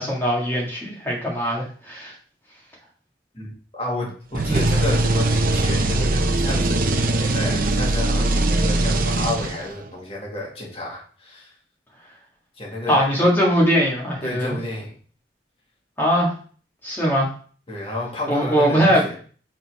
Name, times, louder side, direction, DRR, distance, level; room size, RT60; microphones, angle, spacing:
voice 1, 0.0-2.1 4.4-4.6 12.9-14.6 16.0-16.3 16.8-17.3 18.3-19.2, equal, 10° left, -4 dB, 1.8 m, -21 dB
voice 2, 3.3-11.5 12.6-13.1 14.2-14.9 17.7-19.2, left 1 dB, 30° left, -3 dB, 1.8 m, -30 dB
sound 1, 4.3-9.8, right 2 dB, 50° right, 0.6 m, -21 dB
5.5 x 3.9 x 4.7 m, 0.42 s
head